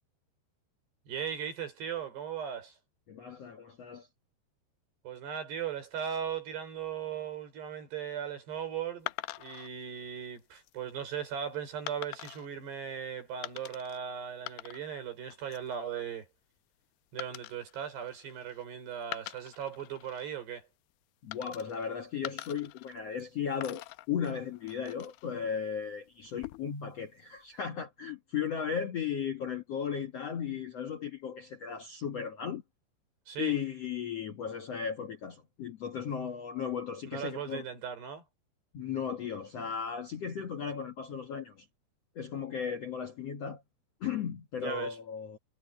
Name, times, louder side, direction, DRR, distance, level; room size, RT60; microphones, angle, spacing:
voice 1, 1.1-2.8 5.0-16.3 17.1-20.7 33.3-33.5 37.1-38.2 44.6-45.0, right 8 dB, 75° right, 7.5 m, -38 dB
voice 2, 3.1-4.1 21.2-32.6 33.4-37.6 38.7-41.7 42.1-43.6 44.0-45.4, left 7 dB, 60° left, 1.7 m, -36 dB
sound 1, 9.1-9.7 10.4-10.7 11.9-12.5 13.4-14.0 14.3-15.0 15.3-15.7 17.2-18.6 19.0-20.3 21.3-21.9 22.2-23.3 23.6-25.3 26.2-26.8, left 18 dB, 80° left, 2.4 m, -45 dB
omnidirectional pair, 4.9 m